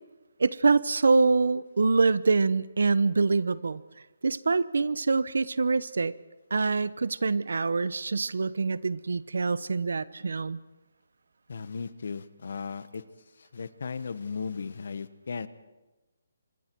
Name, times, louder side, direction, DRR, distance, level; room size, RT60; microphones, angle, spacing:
voice 1, 0.4-3.8 4.2-6.1 6.5-10.6, right 4 dB, 75° right, 18 dB, 0.9 m, -25 dB
voice 2, 11.5-13.0 13.4-15.5, left 5 dB, 55° left, 14 dB, 1.2 m, -36 dB
29.0 x 25.5 x 4.7 m, 1.1 s
hypercardioid pair, 175°, 0 cm